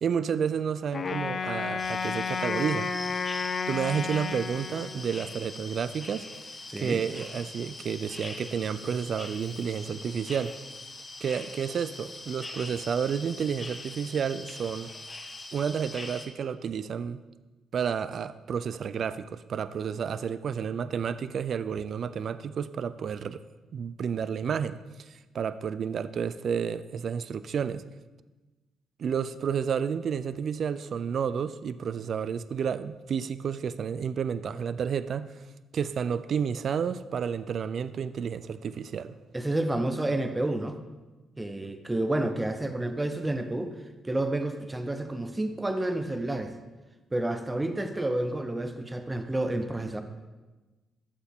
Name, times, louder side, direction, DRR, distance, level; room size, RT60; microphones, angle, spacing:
voice 1, 0.0-2.9 3.7-6.3 6.8-10.6 11.2-14.9 15.5-17.2 17.7-23.4 23.7-27.8 29.0-35.4 35.7-39.2, right 7 dB, 55° right, 0.4 m, -31 dB
Wind instrument woodwind instrument, 0.9-5.3, left 5 dB, 45° left, 0.5 m, -32 dB
sound 1, 1.8-16.2, left 2 dB, 25° left, 1.5 m, -42 dB
voice 2, 6.7-7.0 39.3-40.8 41.4-43.7 44.0-46.5 47.1-50.0, right 1 dB, 15° right, 0.7 m, -30 dB
13.0 x 7.0 x 3.6 m
cardioid pair, 90°, 0 cm